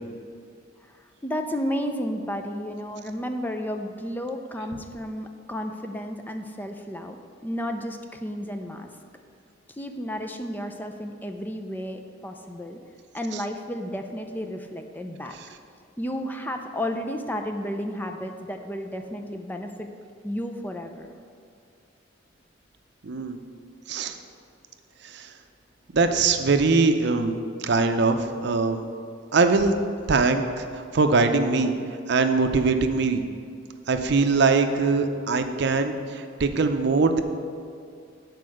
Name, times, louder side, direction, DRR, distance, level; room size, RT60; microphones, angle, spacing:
voice 1, 1.2-7.2 7.4-8.9 9.7-12.8 13.1-15.4 16.0-19.9 20.2-21.1, equal, 10° left, 5 dB, 0.4 m, -32 dB
voice 2, 23.0-23.4 23.9-24.1 25.0-25.3 25.9-28.8 29.3-29.7 30.1-30.7 30.9-31.7 32.1-33.2 33.9-37.2, right 4 dB, 60° right, 7 dB, 0.6 m, -22 dB
9.6 x 4.6 x 6.3 m, 2.3 s
head